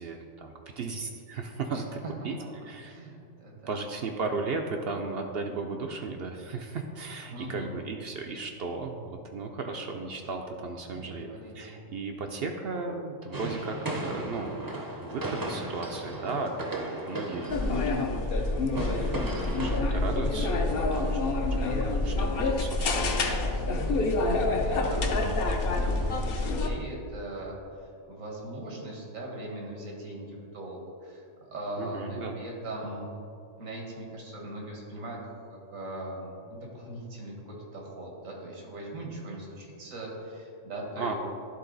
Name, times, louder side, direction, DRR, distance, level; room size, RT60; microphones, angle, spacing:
voice 1, 0.0-2.0 2.2-2.4 2.7-3.0 3.7-11.3 11.5-17.8 18.1-18.5 19.0-21.2 21.5-23.1 23.4-23.6 31.8-32.4 40.9-41.1, right 4 dB, 65° right, 3 dB, 0.7 m, -36 dB
voice 2, 2.8-3.8 7.3-7.7 10.9-11.8 23.2-27.6 28.1-33.1 33.6-35.2 35.5-41.2, right 1 dB, 90° right, -1 dB, 1.8 m, -40 dB
sound 1, 13.3-19.8, right 1 dB, 25° right, 0.5 m, -36 dB
sound 2, 17.5-26.7, left 2 dB, 55° left, 0.8 m, -27 dB
11.0 x 3.8 x 3.9 m, 2.5 s
omnidirectional pair, 1.3 m